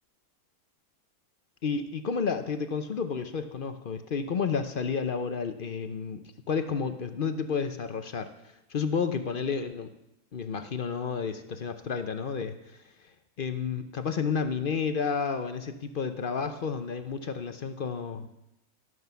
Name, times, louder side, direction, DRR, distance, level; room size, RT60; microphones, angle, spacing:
voice 1, 1.6-6.2 6.5-8.3 8.7-9.9 10.3-12.6 13.4-18.3, left 5 dB, 50° left, 9 dB, 0.7 m, -31 dB
16.5 x 6.3 x 6.8 m, 0.88 s
omnidirectional pair, 1.6 m